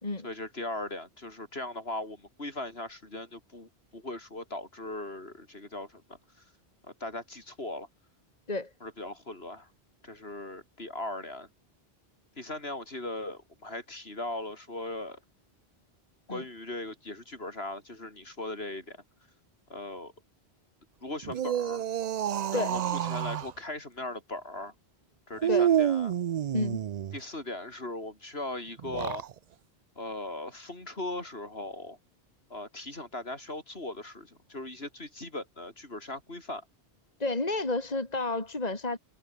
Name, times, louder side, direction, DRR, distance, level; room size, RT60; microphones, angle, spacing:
voice 1, 0.2-6.2 6.8-7.9 8.8-9.7 10.0-11.5 12.4-15.2 16.3-19.0 19.7-20.1 21.0-21.8 22.5-24.7 25.3-26.1 27.1-29.2 29.9-32.0 32.5-36.6, left 2 dB, 70° left, 5.1 m, -39 dB
sound 1, 21.2-23.5 25.4-27.2 28.8-29.3, right 10 dB, 55° right, 0.5 m, -28 dB
voice 2, 37.2-39.0, left 2 dB, 40° left, 2.8 m, -30 dB
omnidirectional pair, 1.1 m